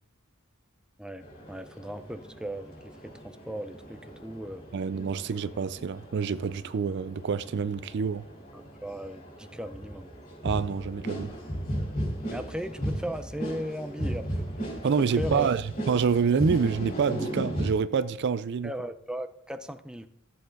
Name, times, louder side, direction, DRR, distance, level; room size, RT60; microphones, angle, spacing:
voice 1, 1.0-4.7 8.1-8.2 8.5-10.2 12.3-14.5 15.0-15.5 18.6-20.1, equal, 5° right, 0.6 m, -37 dB
sound 1, 1.2-17.7, equal, 45° left, 3.9 m, -36 dB
voice 2, 4.7-8.2 10.4-11.3 14.8-15.6 15.9-18.7, right 6 dB, 55° right, 0.4 m, -27 dB
13.5 x 7.9 x 3.9 m
head